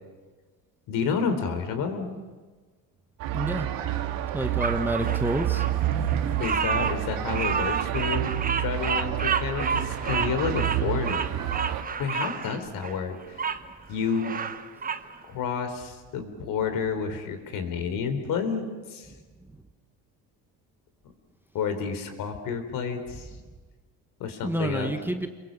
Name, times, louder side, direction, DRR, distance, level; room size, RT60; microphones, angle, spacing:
voice 1, 0.9-2.2 6.4-8.3 8.6-11.2 12.0-13.5 13.9-14.3 15.2-19.1 21.5-23.3 24.2-24.9, left 6 dB, 60° left, 8 dB, 3.9 m, -30 dB
sound 1, 3.2-11.8, right 12 dB, 65° right, 2.1 m, -29 dB
voice 2, 3.3-3.7 4.3-5.6 24.4-25.3, right 1 dB, 5° right, 6 dB, 1.4 m, -28 dB
Bird vocalization bird call bird song, 4.6-13.6 14.0-15.1, right 6 dB, 25° right, 1.0 m, -30 dB
28.0 x 22.5 x 7.5 m, 1.3 s
cardioid pair, 125°, 37 cm